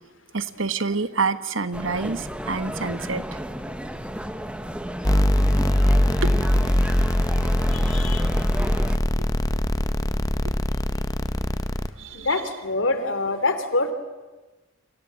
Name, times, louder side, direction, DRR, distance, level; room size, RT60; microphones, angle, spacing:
voice 1, 0.3-3.2 6.1-6.7 8.0-8.1 12.0-12.4, right 4 dB, 75° right, 12 dB, 1.3 m, -28 dB
sound 1, 1.7-9.0, equal, 5° right, 1.2 m, -33 dB
sound 2, 5.0-11.9, left 1 dB, 20° left, 0.9 m, -22 dB
voice 2, 7.7-8.3 12.1-13.9, left 2 dB, 75° left, 10 dB, 3.0 m, -25 dB
29.5 x 26.5 x 7.6 m, 1.2 s
head